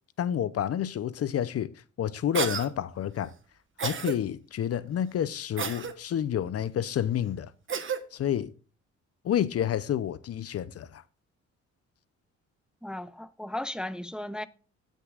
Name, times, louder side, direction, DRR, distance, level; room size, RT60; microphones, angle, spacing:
voice 1, 0.2-1.7 2.0-3.3 3.8-7.5 8.1-8.5 9.2-11.0, left 10 dB, 50° left, 0.6 m, -29 dB
Cough, 2.3-2.7 3.8-4.2 5.6-5.9 7.7-8.0, right 7 dB, 40° right, 1.2 m, -31 dB
voice 2, 12.8-14.5, left 1 dB, 5° right, 0.5 m, -35 dB
18.5 x 6.4 x 2.4 m
cardioid pair, 90°, 30 cm